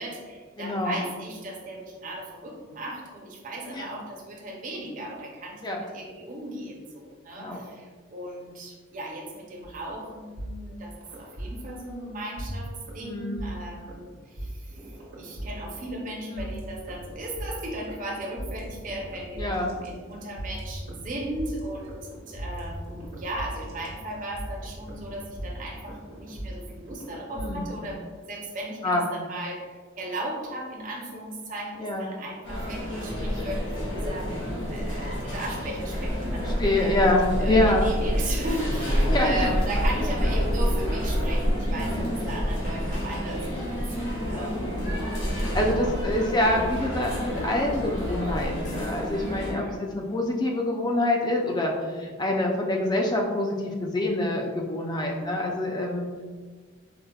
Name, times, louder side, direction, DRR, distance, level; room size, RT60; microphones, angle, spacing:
voice 1, 0.0-28.0 28.3-37.1 37.4-45.0 45.5-46.1 49.1-49.8, right 1 dB, 40° right, -1 dB, 0.5 m, -37 dB
voice 2, 0.6-1.0 3.7-3.9 5.6-5.8 7.4-7.6 13.0-13.4 16.3-16.5 19.4-19.7 27.3-27.7 28.8-29.0 31.8-32.1 36.4-37.9 39.1-39.5 41.8-42.1 44.3-44.6 45.4-56.1, left 1 dB, 20° left, 0 dB, 0.3 m, -26 dB
sound 1, 9.6-12.0 12.4-28.0, right 1 dB, 85° right, 1.1 m, -39 dB
sound 2, 32.4-49.5, equal, 65° left, 1.1 m, -28 dB
4.8 x 2.1 x 2.2 m, 1.5 s
head